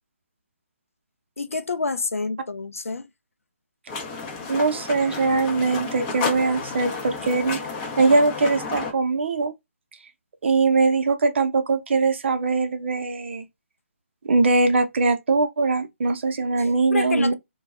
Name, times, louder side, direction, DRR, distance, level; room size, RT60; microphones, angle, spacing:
voice 1, 1.4-3.1 16.6-17.3, left 3 dB, 85° left, 0.5 m, -28 dB
sound 1, 3.9-8.9, left 4 dB, 20° left, 0.5 m, -31 dB
voice 2, 4.5-7.6 8.0-9.5 10.4-13.4 14.2-17.3, right 3 dB, 55° right, 0.6 m, -21 dB
2.3 x 2.1 x 3.4 m
figure-of-eight pair, 145°, 7 cm